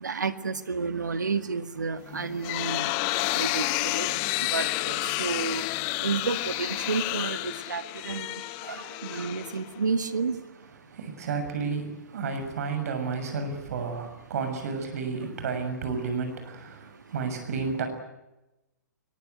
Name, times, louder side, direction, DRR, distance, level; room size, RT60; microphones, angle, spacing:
voice 1, 0.0-2.9 3.4-5.7 6.0-8.3 8.6-10.4, right 5 dB, 80° right, 10 dB, 2.0 m, -31 dB
sound 1, 2.1-9.9, left 19 dB, 35° left, 0.9 m, -30 dB
voice 2, 10.9-17.9, right 5 dB, 55° right, 7 dB, 6.8 m, -31 dB
23.0 x 22.5 x 9.5 m, 0.97 s
figure-of-eight pair, 125°, 10 cm